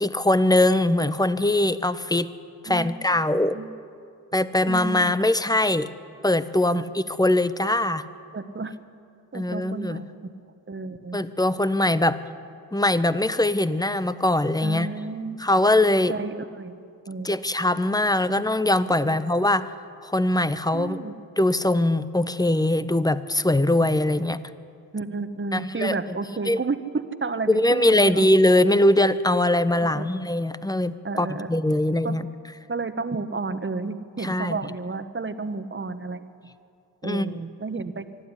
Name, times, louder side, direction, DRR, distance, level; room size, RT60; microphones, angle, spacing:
voice 1, 0.0-2.3 2.6-3.6 4.3-5.9 6.2-8.0 9.3-10.0 11.1-12.2 12.7-14.9 15.4-16.1 17.2-19.7 20.0-21.0 21.4-24.4 25.5-25.9 26.5-26.6 27.5-32.3 34.2-34.6 37.0-37.2, left 1 dB, 10° left, 14 dB, 1.1 m, -22 dB
voice 2, 2.7-3.1 3.5-3.7 4.7-5.2 6.7-6.9 8.3-8.7 9.3-10.1 10.7-11.2 14.6-15.4 16.1-17.3 18.3-18.5 19.0-19.5 20.7-21.1 24.9-28.3 29.8-30.1 31.0-31.5 32.0-32.2 32.7-36.3 37.0-38.0, right 3 dB, 25° right, 10 dB, 1.5 m, -31 dB
24.5 x 12.5 x 10.0 m, 2.4 s
supercardioid pair, 50°, 43 cm